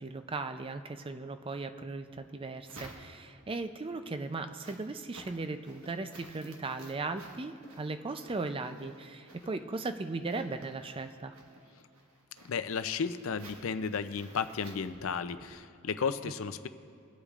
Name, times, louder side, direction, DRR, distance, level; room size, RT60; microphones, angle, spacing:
voice 1, 0.0-11.4, right 3 dB, 25° right, 9 dB, 0.4 m, -37 dB
sound 1, 2.1-3.5 4.0-15.6, right 2 dB, 75° right, 1.4 m, -55 dB
sound 2, 5.2-5.4 5.8-6.0 6.4-6.7 7.0-7.2 7.6-7.9 8.2-8.4 8.8-9.1 9.4-9.6, left 1 dB, 45° left, 1.0 m, -57 dB
voice 2, 12.4-16.7, left 6 dB, 65° left, 11 dB, 0.5 m, -34 dB
24.0 x 8.4 x 2.4 m, 2.6 s
head